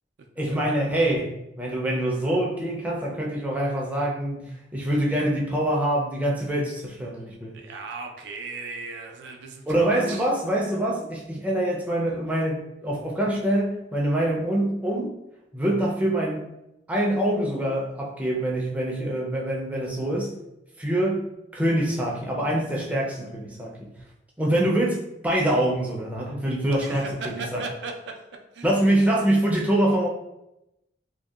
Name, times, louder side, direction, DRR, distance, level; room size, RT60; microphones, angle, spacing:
voice 1, 0.4-7.6 9.7-15.2 15.5-16.5 16.9-20.4 20.8-23.9 24.4-27.6 28.6-30.1, right 1 dB, 10° right, -3 dB, 0.4 m, -25 dB
voice 2, 7.5-10.3 26.8-28.2 28.5-28.9, right 3 dB, 80° right, 3 dB, 0.4 m, -37 dB
2.7 x 2.1 x 2.3 m, 0.89 s
head